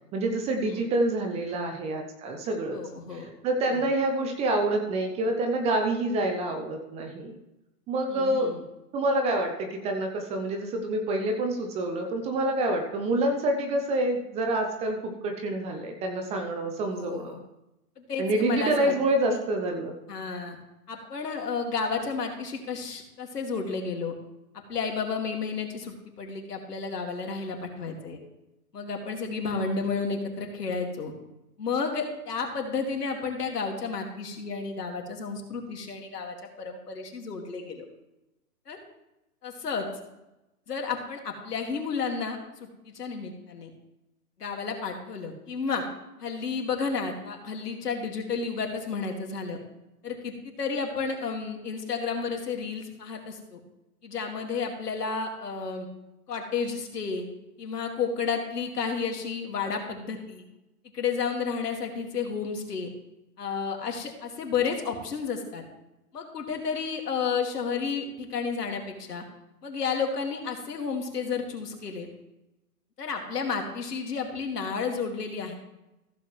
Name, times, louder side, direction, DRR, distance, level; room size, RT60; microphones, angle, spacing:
voice 1, 0.1-2.8 3.1-7.4 7.9-8.5 8.9-17.4 18.2-19.9, right 1 dB, 15° right, 4 dB, 0.7 m, -27 dB
voice 2, 2.7-3.3 3.7-3.9 8.1-8.6 16.9-17.4 18.0-19.0 19.3-19.4 20.1-20.6 20.9-24.1 24.7-28.2 28.7-31.1 31.6-37.9 38.7-38.8 39.4-39.9 40.7-42.4 42.9-43.7 44.4-45.8 46.2-49.6 50.0-53.6 54.0-55.9 56.3-57.2 57.6-60.4 60.9-62.9 63.4-65.6 66.1-69.2 69.6-72.1 73.0-75.6, left 5 dB, 80° left, 3 dB, 2.3 m, -32 dB
15.0 x 7.5 x 3.2 m, 0.92 s
hypercardioid pair, 135°, 47 cm